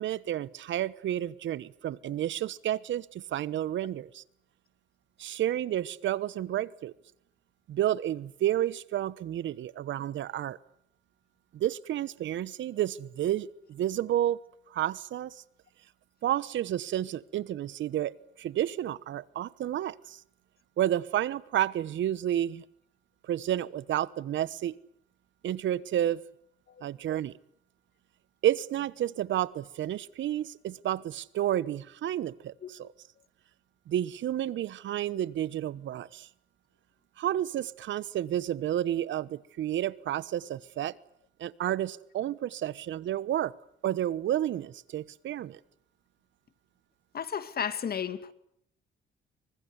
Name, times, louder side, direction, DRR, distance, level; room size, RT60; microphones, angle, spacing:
voice 1, 0.0-4.2 5.2-6.9 7.7-10.6 11.5-14.4 14.7-15.4 16.2-20.2 20.8-22.6 23.3-24.8 25.4-26.2 26.8-27.3 28.4-32.9 33.9-36.3 37.2-40.9 41.4-43.5 43.8-45.6, right 12 dB, 70° right, 1.1 m, -31 dB
voice 2, 47.1-48.3, left 8 dB, 50° left, 2.3 m, -33 dB
26.5 x 24.0 x 8.2 m
cardioid pair, 90°, 20 cm